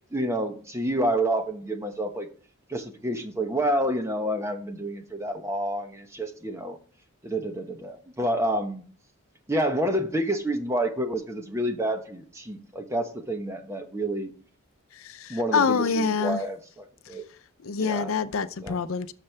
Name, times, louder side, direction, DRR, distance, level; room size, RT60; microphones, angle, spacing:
voice 1, 0.1-2.3 2.7-6.8 7.2-8.8 9.5-14.3 15.3-17.2 17.8-18.1 18.6-18.8, right 1 dB, 15° right, 1.1 m, -28 dB
voice 2, 15.0-16.4 17.6-19.1, left 5 dB, 75° left, 0.6 m, -26 dB
12.0 x 6.7 x 3.4 m
head